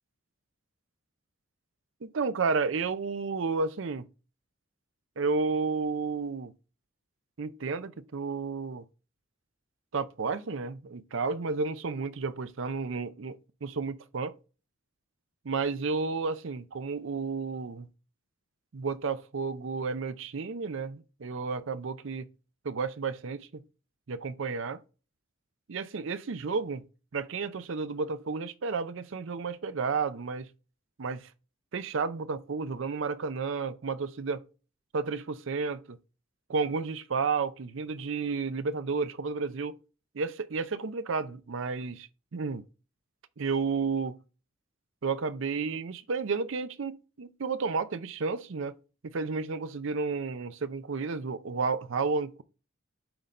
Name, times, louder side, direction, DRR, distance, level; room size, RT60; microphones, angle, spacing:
voice 1, 2.0-4.0 5.2-6.5 7.4-8.8 9.9-14.3 15.4-17.9 18.7-22.3 22.6-23.6 24.1-24.8 25.7-26.8 27.1-30.5 31.0-31.3 31.7-34.4 34.9-36.0 36.5-39.8 40.1-42.6 43.4-44.1 45.0-48.8 49.0-52.4, right 4 dB, 65° right, 0.5 m, -32 dB
7.8 x 3.9 x 4.1 m
head